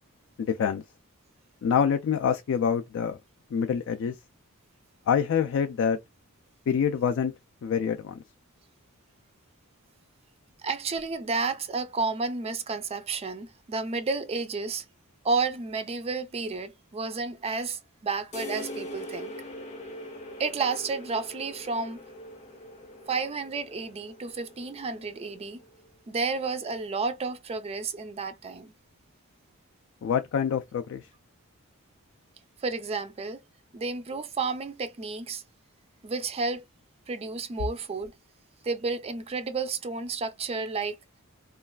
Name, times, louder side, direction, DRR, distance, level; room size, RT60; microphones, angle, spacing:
voice 1, 0.4-0.8 1.6-3.2 3.5-4.2 5.1-6.0 6.7-7.3 7.6-8.2 30.0-31.1, left 7 dB, 60° left, 0.3 m, -26 dB
voice 2, 10.6-14.9 15.2-19.3 20.4-22.0 23.1-25.6 26.1-28.7 32.6-33.4 33.7-35.4 36.0-36.6 37.1-38.1 38.6-41.0, right 4 dB, 30° right, 0.4 m, -31 dB
sound 1, 18.3-25.9, left 1 dB, 30° left, 0.7 m, -42 dB
3.1 x 2.3 x 2.2 m
head